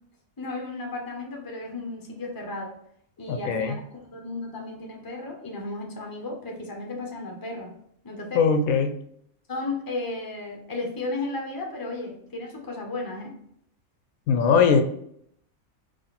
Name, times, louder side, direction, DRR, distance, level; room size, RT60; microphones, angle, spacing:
voice 1, 0.4-2.8 3.2-7.8 8.0-8.4 9.5-13.4, left 2 dB, 20° left, 1 dB, 0.8 m, -34 dB
voice 2, 3.3-3.7 8.3-8.9 14.3-14.8, left 6 dB, 80° left, 7 dB, 1.0 m, -20 dB
4.0 x 3.2 x 4.1 m, 0.68 s
omnidirectional pair, 1.5 m